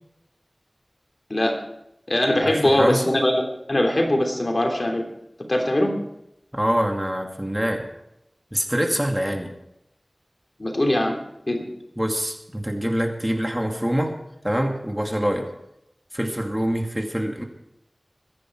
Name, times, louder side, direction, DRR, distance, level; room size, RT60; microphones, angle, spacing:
voice 1, 1.3-1.6 2.1-3.4 3.7-5.0 5.5-5.9 10.6-11.2 11.5-11.7, left 1 dB, 50° left, 1 dB, 3.3 m, -21 dB
voice 2, 2.4-3.1 6.5-7.9 8.5-9.5 12.0-14.1 14.4-15.5 16.1-17.4, equal, 10° right, 2 dB, 2.3 m, -25 dB
22.5 x 10.0 x 4.6 m, 0.84 s
wide cardioid pair, 45°, 0 cm